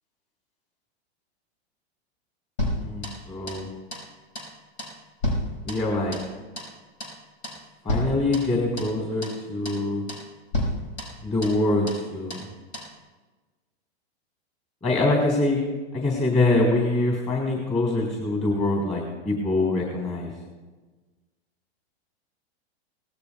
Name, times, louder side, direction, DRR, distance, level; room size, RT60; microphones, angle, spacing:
sound 1, 2.6-3.7 3.9-4.1 4.3-4.5 4.8-6.3 6.6-6.7 7.0-7.2 7.4-7.6 7.9-9.0 9.2-9.4 9.6-9.8 10.1-10.3 10.5-11.6 11.9-12.0 12.3-12.5 12.7-12.9, left 1 dB, 90° left, 5.7 m, -31 dB
voice 1, 2.8-3.7 5.6-6.2 7.8-10.0 11.2-12.5 14.8-15.6 15.9-20.3, left 2 dB, 20° left, -1 dB, 3.5 m, -24 dB
23.5 x 19.0 x 2.3 m, 1.3 s
hypercardioid pair, 130°, 33 cm